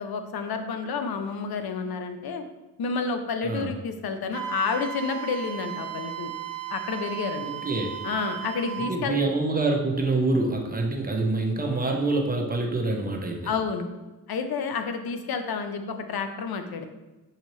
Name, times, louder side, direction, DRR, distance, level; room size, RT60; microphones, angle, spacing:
voice 1, 0.0-2.4 2.8-6.3 6.7-7.5 8.0-9.2 13.4-13.9 14.3-16.9, left 5 dB, 70° left, 7 dB, 0.6 m, -30 dB
voice 2, 3.4-3.7 7.4-8.0 8.8-13.5, right 2 dB, 25° right, 1 dB, 0.8 m, -26 dB
Wind instrument woodwind instrument, 4.3-9.0, right 11 dB, 60° right, 0.7 m, -35 dB
6.4 x 2.7 x 3.1 m, 1.1 s
cardioid pair, 60°, 38 cm